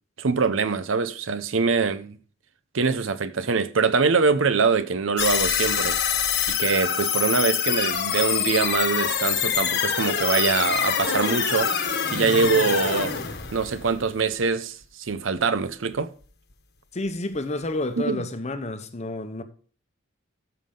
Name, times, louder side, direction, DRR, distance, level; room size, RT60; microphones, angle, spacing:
voice 1, 0.2-2.2 2.7-6.0 6.5-11.7 12.0-13.2 13.5-16.1 18.0-18.2, right 4 dB, 70° right, 0.7 m, -23 dB
sound 1, 5.2-14.4, left 8 dB, 55° left, 1.3 m, -25 dB
voice 2, 16.9-19.4, left 2 dB, 35° left, 0.9 m, -30 dB
14.0 x 5.7 x 3.7 m
head